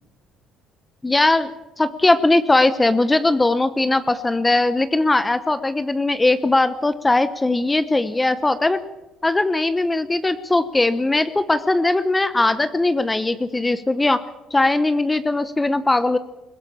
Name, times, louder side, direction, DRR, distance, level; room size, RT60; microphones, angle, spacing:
voice 1, 1.0-1.5 1.8-8.8 9.2-14.2 14.5-16.2, left 2 dB, 10° left, 12 dB, 0.9 m, -19 dB
21.5 x 16.5 x 8.7 m, 1.0 s
cardioid pair, 130°, 0 cm